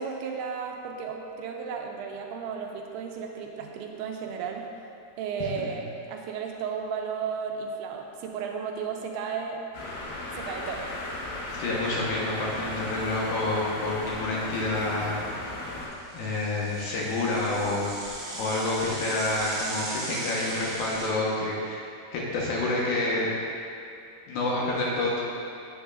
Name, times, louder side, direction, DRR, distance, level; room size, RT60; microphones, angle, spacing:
voice 1, 0.0-4.7 5.2-5.8 6.1-9.6 10.4-10.9, right 6 dB, 85° right, 1 dB, 2.6 m, -34 dB
sound 1, 9.7-15.9, left 2 dB, 90° left, 3.2 m, -36 dB
voice 2, 11.5-15.2 16.1-21.8 22.1-23.3 24.3-25.2, left 2 dB, 70° left, -5 dB, 2.7 m, -28 dB
Bicycle / Mechanisms, 11.8-12.2 12.5-12.6 12.9-13.0 13.6-14.8 15.2-21.1, right 2 dB, 65° right, 0.9 m, -38 dB
8.6 x 8.0 x 2.4 m, 2.5 s
omnidirectional pair, 4.6 m